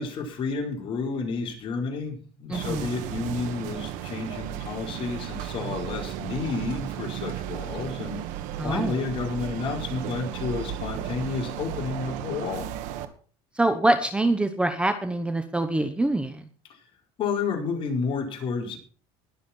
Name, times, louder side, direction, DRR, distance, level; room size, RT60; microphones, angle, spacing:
voice 1, 0.0-8.2 8.6-12.7 16.6-16.8 17.2-18.8, left 4 dB, 40° left, 1 dB, 4.6 m, -31 dB
voice 2, 2.5-2.9 8.6-8.9 13.6-16.4, right 2 dB, 10° right, 8 dB, 1.0 m, -25 dB
sound 1, 2.5-13.1, right 11 dB, 75° right, 1.7 m, -34 dB
21.0 x 7.2 x 4.5 m, 0.40 s
cardioid pair, 140°, 13 cm